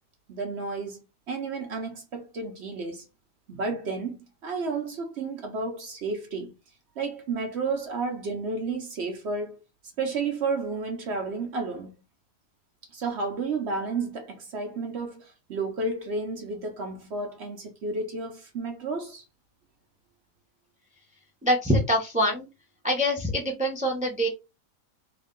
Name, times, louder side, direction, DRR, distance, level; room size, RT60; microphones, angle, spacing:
voice 1, 0.3-1.0 1.3-3.1 3.5-4.2 4.4-6.5 7.0-9.6 10.0-11.9 12.9-19.2, right 3 dB, 60° right, 0.7 m, -31 dB
voice 2, 21.4-22.5 22.8-24.3, equal, 10° right, 0.3 m, -24 dB
3.5 x 2.2 x 3.6 m
omnidirectional pair, 1.6 m